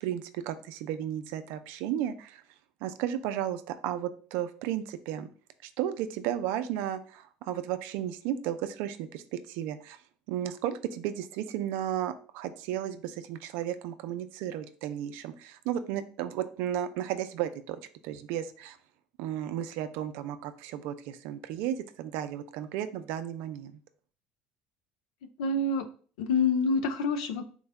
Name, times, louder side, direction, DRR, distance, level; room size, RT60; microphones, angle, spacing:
voice 1, 0.0-2.4 2.8-5.3 5.6-10.0 10.3-18.8 19.2-23.7, right 11 dB, 75° right, 11 dB, 0.3 m, -34 dB
voice 2, 25.4-25.9 26.2-27.5, left 3 dB, 85° left, 9 dB, 0.4 m, -27 dB
3.8 x 2.1 x 3.4 m, 0.43 s
supercardioid pair, 85°, 3 cm